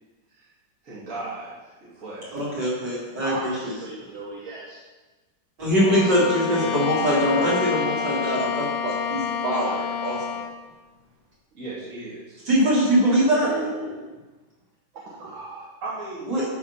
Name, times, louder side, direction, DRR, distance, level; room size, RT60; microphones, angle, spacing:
voice 1, 0.8-2.5 6.5-6.8 11.5-12.4 15.8-16.3, right 2 dB, 40° right, -7 dB, 2.9 m, -36 dB
voice 2, 2.3-3.7 5.6-10.4 12.5-13.5 16.3-16.4, equal, 55° right, -7 dB, 4.4 m, -22 dB
voice 3, 3.2-4.8 13.4-14.2 15.0-15.6, right 3 dB, 75° right, -3 dB, 2.0 m, -35 dB
Bowed string instrument, 5.7-10.6, left 8 dB, 45° left, 0.8 m, -28 dB
12.0 x 5.5 x 5.7 m, 1.2 s
omnidirectional pair, 2.2 m